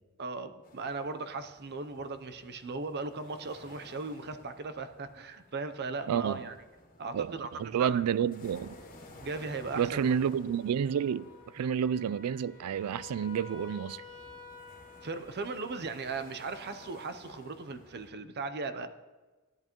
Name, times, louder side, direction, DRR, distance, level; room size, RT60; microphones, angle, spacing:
voice 1, 0.2-6.6 7.0-7.5 7.8-8.0 9.2-10.1 11.6-11.7 15.0-18.9, right 3 dB, 50° right, 0.6 m, -38 dB
sound 1, 0.6-18.1, left 1 dB, 40° left, 2.0 m, -55 dB
voice 2, 6.1-6.4 7.1-7.3 7.6-8.7 9.8-14.0, right 8 dB, 85° right, 0.3 m, -30 dB
sound 2, 7.5-17.0, left 6 dB, 75° left, 2.0 m, -53 dB
14.5 x 10.5 x 3.0 m
head